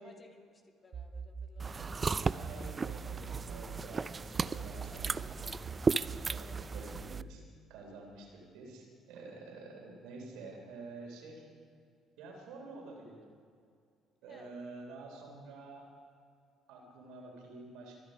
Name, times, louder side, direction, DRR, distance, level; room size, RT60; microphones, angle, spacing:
voice 1, 0.0-1.9 4.2-5.1 5.4-6.7 14.3-14.5, left 3 dB, 35° left, 2 dB, 2.8 m, -60 dB
sound 1, 0.9-3.9 4.3-7.4, right 6 dB, 50° right, 1.1 m, -43 dB
sound 2, 1.6-7.2, right 4 dB, 35° right, 0.4 m, -35 dB
voice 2, 2.2-5.5 6.3-7.4 7.7-11.5 12.2-13.2 14.2-15.9 16.7-18.0, right 3 dB, 75° right, 1 dB, 3.5 m, -49 dB
23.5 x 10.0 x 5.2 m, 2.3 s
hypercardioid pair, 55°, 0 cm